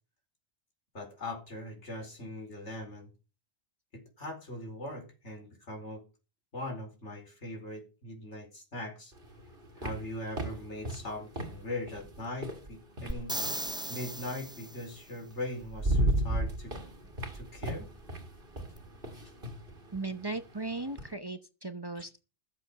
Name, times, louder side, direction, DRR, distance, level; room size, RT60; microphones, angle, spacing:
voice 1, 0.9-3.1 3.9-6.0 6.5-9.1 9.8-13.3 13.9-16.7 17.3-17.9 22.0-22.1, left 1 dB, 85° left, 4.9 m, -40 dB
sound 1, 9.1-13.7 15.0-15.1 15.5-21.1, right 1 dB, 50° right, 2.5 m, -35 dB
sound 2, 13.1-14.9 18.8-18.9, right 1 dB, 5° right, 0.4 m, -36 dB
voice 2, 19.9-22.3, right 3 dB, 25° right, 0.8 m, -37 dB
14.5 x 7.7 x 6.7 m
omnidirectional pair, 1.2 m